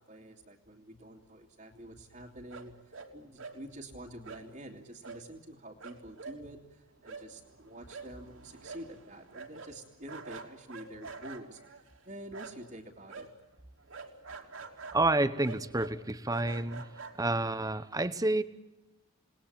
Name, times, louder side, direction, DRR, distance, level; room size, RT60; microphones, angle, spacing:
voice 1, 0.0-13.3, right 1 dB, 35° right, -5 dB, 2.6 m, -48 dB
sound 1, 2.5-3.1 3.4-3.6 4.2-4.4 5.0-5.2 5.5-5.6 5.8-12.8 13.1-17.6, right 4 dB, 65° right, 3.3 m, -47 dB
voice 2, 14.9-16.9 17.2-18.4, right 2 dB, 15° right, 13 dB, 1.0 m, -29 dB
28.5 x 20.0 x 8.9 m, 1.0 s
head